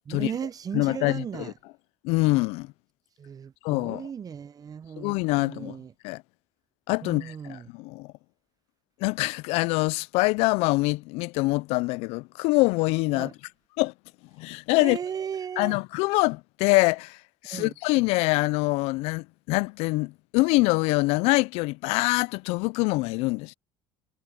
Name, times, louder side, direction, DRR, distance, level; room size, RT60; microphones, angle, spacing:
voice 1, 0.1-1.5 3.2-5.9 7.0-7.7 13.1-13.3 14.8-15.8 17.5-17.7, right 7 dB, 35° right, 0.7 m, -36 dB
voice 2, 0.7-1.5 2.0-2.7 3.6-4.1 5.0-5.8 6.0-6.2 6.9-8.1 9.0-13.3 13.8-13.9 14.4-15.0 15.6-17.2 17.4-23.5, left 24 dB, 75° left, 0.4 m, -25 dB
supercardioid pair, 80°, 11 cm